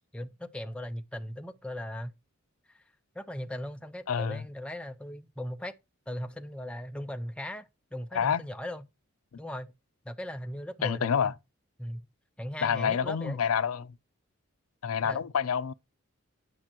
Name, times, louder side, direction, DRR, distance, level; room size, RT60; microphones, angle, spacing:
voice 1, 0.1-2.1 2.7-2.8 3.1-5.7 6.1-8.8 9.4-9.7 10.0-11.3 11.8-12.1 12.4-13.4 15.0-15.2, left 1 dB, 5° left, 0.4 m, -38 dB
voice 2, 4.1-4.4 8.1-8.4 10.8-11.3 12.6-13.9 14.8-15.7, left 7 dB, 80° left, 0.5 m, -28 dB
9.8 x 5.3 x 2.9 m
head